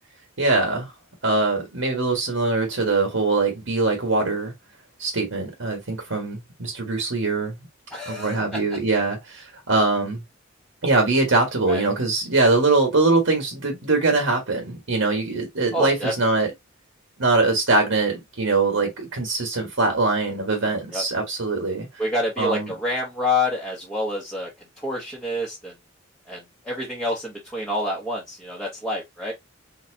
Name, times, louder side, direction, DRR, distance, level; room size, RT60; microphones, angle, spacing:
voice 1, 0.4-0.9 1.2-4.5 5.0-7.5 8.1-10.2 10.8-16.5 17.2-21.9 22.4-22.7, right 3 dB, 65° right, 1.6 m, -22 dB
voice 2, 7.9-8.6 11.7-11.8 15.7-16.1 20.9-21.0 22.0-24.5 24.8-25.7 26.3-29.3, left 1 dB, 5° left, 1.2 m, -27 dB
4.2 x 3.8 x 2.8 m
head